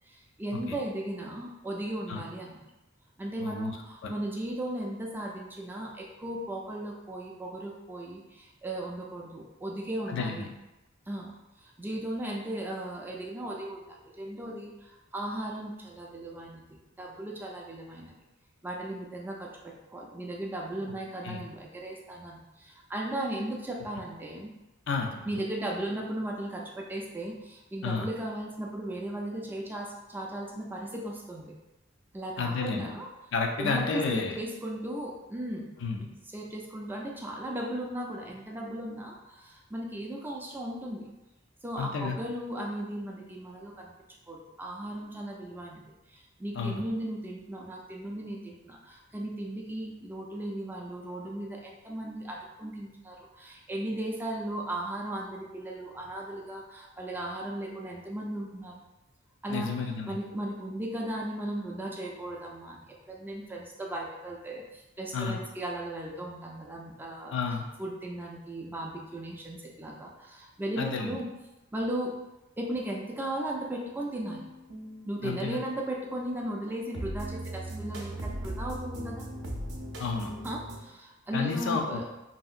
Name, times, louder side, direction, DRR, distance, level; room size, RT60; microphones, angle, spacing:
voice 1, 0.1-2.6 3.2-10.5 11.1-11.3 11.6-18.1 18.6-24.5 25.2-31.5 32.1-33.1 33.6-35.7 36.3-41.1 41.6-43.9 44.3-58.8 59.4-67.3 67.8-71.3 71.7-72.1 72.6-74.5 75.0-79.2 80.4-82.0, right 1 dB, 10° right, -2 dB, 0.3 m, -36 dB
voice 2, 3.4-3.8 4.0-4.1 10.1-10.5 21.2-21.4 24.9-25.4 27.8-28.1 32.4-32.9 33.3-34.4 35.8-36.1 41.8-42.2 46.6-46.8 59.5-60.2 65.1-65.4 67.3-67.7 70.8-71.2 75.2-75.6 80.0-80.3 81.3-82.0, left 4 dB, 65° left, 2 dB, 0.4 m, -31 dB
sound 1, 74.1-80.8, right 1 dB, 65° right, 0.5 m, -39 dB
2.8 x 2.7 x 2.4 m, 1.0 s
head